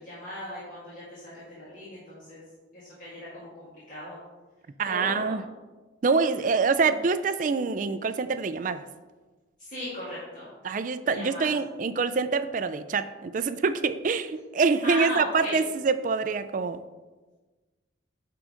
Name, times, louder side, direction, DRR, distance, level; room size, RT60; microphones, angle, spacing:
voice 1, 0.0-2.4 2.7-4.2 4.9-5.4 6.8-6.9 9.6-10.5 11.0-11.5 14.8-15.6, left 1 dB, 45° left, -9 dB, 2.1 m, -37 dB
voice 2, 4.8-5.4 6.0-8.8 10.6-16.8, right 4 dB, 40° right, 12 dB, 0.4 m, -25 dB
9.7 x 3.8 x 5.0 m, 1.2 s
head